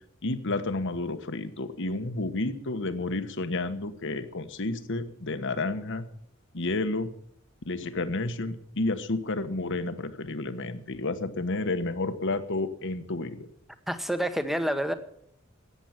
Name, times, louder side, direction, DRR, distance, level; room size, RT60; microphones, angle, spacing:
voice 1, 0.2-6.0 6.5-7.1 7.7-13.5, left 2 dB, 60° left, 10 dB, 1.3 m, -31 dB
voice 2, 13.9-14.9, equal, ahead, 9 dB, 1.1 m, -28 dB
14.0 x 9.1 x 8.9 m, 0.69 s
head